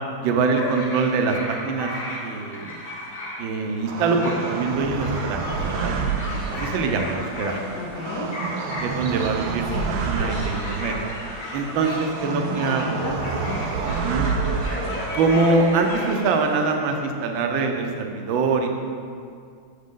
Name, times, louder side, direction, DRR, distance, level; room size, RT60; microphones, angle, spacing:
voice 1, 0.2-1.9 2.2-2.8 3.4-5.9 6.6-7.6 8.8-9.6 10.1-10.9 11.5-13.0 13.8-14.3 15.1-18.7, right 4 dB, 70° right, 4 dB, 1.4 m, -24 dB
sound 1, 0.5-16.4, left 1 dB, 45° left, 0.6 m, -35 dB
sound 2, 3.9-16.2, right 5 dB, 90° right, 1.5 m, -30 dB
sound 3, 5.5-16.7, right 1 dB, 50° right, 1.1 m, -38 dB
voice 2, 7.8-8.3 9.7-10.0 12.2-13.7, left 3 dB, 70° left, -1 dB, 1.0 m, -34 dB
7.5 x 6.4 x 3.7 m, 2.3 s
omnidirectional pair, 2.4 m